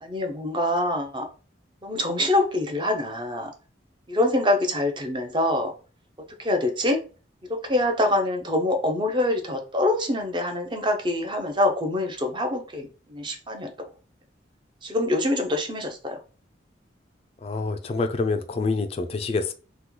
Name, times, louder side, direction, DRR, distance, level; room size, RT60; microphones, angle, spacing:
voice 1, 0.0-1.2 1.8-3.5 4.1-5.7 6.4-7.0 7.5-13.7 14.8-16.2, left 1 dB, 25° right, 0.6 m, -25 dB
voice 2, 17.4-19.5, left 3 dB, 30° left, 0.3 m, -26 dB
3.0 x 2.2 x 3.7 m
head